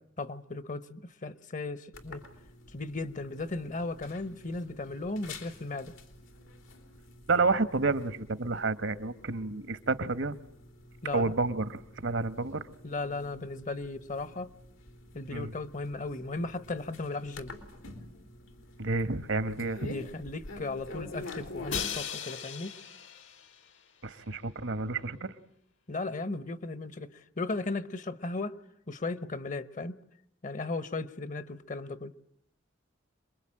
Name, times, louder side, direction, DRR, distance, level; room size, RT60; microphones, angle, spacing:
voice 1, 0.2-2.2 2.7-5.9 11.0-11.3 12.8-14.5 15.1-17.5 19.6-22.7 25.9-27.1 27.4-28.6 28.9-30.0 30.4-32.1, left 3 dB, 40° left, 1.0 m, -36 dB
sound 1, 1.9-21.8, left 2 dB, 90° left, 3.5 m, -48 dB
voice 2, 7.3-10.3 11.1-12.6 15.3-15.5 18.8-19.9 24.0-25.3, right 3 dB, 70° right, 1.1 m, -30 dB
Crash cymbal, 21.7-23.7, left 8 dB, 70° left, 1.7 m, -37 dB
27.0 x 22.0 x 8.8 m
head